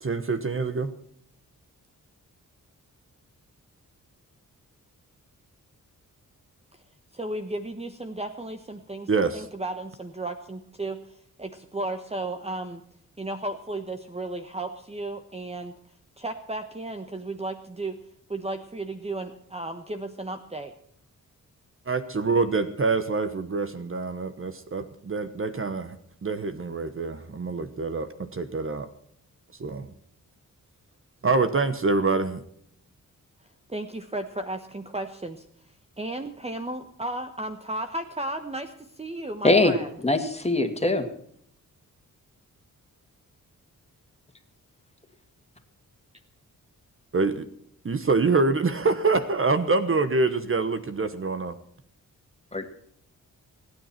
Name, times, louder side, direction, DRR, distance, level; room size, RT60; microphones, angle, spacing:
voice 1, 0.0-0.9 9.1-9.4 21.9-26.0 26.2-28.9 29.6-29.9 31.2-32.4 47.1-47.5 47.8-51.6, right 3 dB, 40° right, 10 dB, 1.2 m, -25 dB
voice 2, 7.1-12.8 13.2-15.7 16.2-18.0 18.3-20.7 33.7-35.4 36.0-39.9, right 2 dB, 20° right, 6 dB, 1.2 m, -34 dB
voice 3, 40.0-41.0 52.5-52.7, left 2 dB, 20° left, 6 dB, 2.3 m, -21 dB
26.0 x 9.7 x 4.5 m, 0.66 s
cardioid pair, 80°, 33 cm